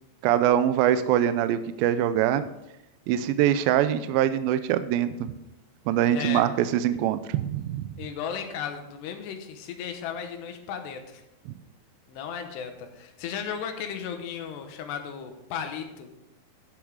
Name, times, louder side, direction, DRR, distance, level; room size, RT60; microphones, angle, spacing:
voice 1, 0.2-2.4 3.1-5.3 5.9-7.9 11.5-11.6, right 11 dB, 85° right, 11 dB, 2.2 m, -23 dB
voice 2, 5.9-6.5 8.0-11.2 12.1-16.1, left 7 dB, 85° left, 6 dB, 3.3 m, -35 dB
13.0 x 7.1 x 5.0 m, 0.89 s
omnidirectional pair, 4.7 m